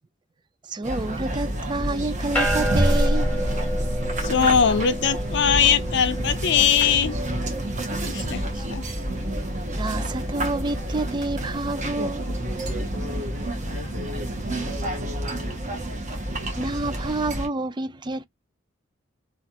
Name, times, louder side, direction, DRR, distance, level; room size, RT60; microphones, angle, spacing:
voice 1, 0.7-3.3 8.0-8.3 8.5-8.6 9.7-12.3 16.6-18.3, right 2 dB, 20° right, 0.3 m, -29 dB
sound 1, 0.8-17.5, right 1 dB, 35° right, 1.2 m, -28 dB
sound 2, 2.4-13.9, equal, 10° left, 1.0 m, -35 dB
voice 2, 4.2-7.2 8.0-8.4 8.7-8.8, left 7 dB, 60° left, 0.5 m, -21 dB
voice 3, 12.3-15.7, left 2 dB, 75° right, 0.8 m, -39 dB
3.1 x 2.5 x 2.8 m
head